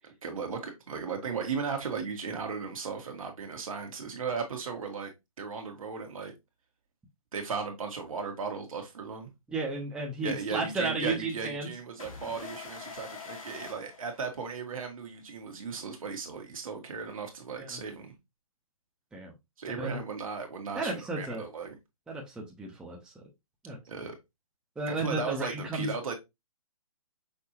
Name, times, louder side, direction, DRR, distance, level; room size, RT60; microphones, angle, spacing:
voice 1, 0.2-5.1 5.4-6.3 7.3-9.3 10.2-18.1 19.6-21.7 23.9-24.2 24.9-26.1, right 5 dB, 70° right, 1.5 m, -36 dB
voice 2, 9.5-11.7 17.6-17.7 19.1-19.3 19.8-20.0 20.7-21.4 22.1-23.2 23.6-23.8 24.8-25.9, right 2 dB, 5° right, 0.8 m, -33 dB
sound 1, 12.0-14.8, left 5 dB, 65° left, 1.7 m, -45 dB
5.8 x 2.6 x 2.9 m
hypercardioid pair, 145°, 19 cm